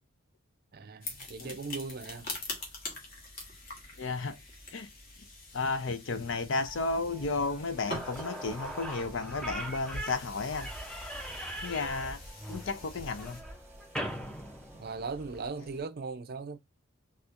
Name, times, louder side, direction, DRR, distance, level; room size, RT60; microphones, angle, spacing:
voice 1, 0.7-2.4 14.7-16.6, right 4 dB, 45° right, 0.4 m, -39 dB
sound 1, 1.0-13.4, left 2 dB, 45° left, 1.1 m, -45 dB
voice 2, 4.0-4.4 4.7-4.9 5.5-10.7 11.6-12.2 12.5-13.4, left 3 dB, 60° left, 0.5 m, -33 dB
Chimes In The Wind, 6.6-15.8, right 1 dB, 10° right, 0.9 m, -48 dB
Slam / Squeak, 7.6-7.7 7.9-15.4, right 1 dB, 5° left, 0.5 m, -41 dB
4.2 x 2.4 x 2.5 m
head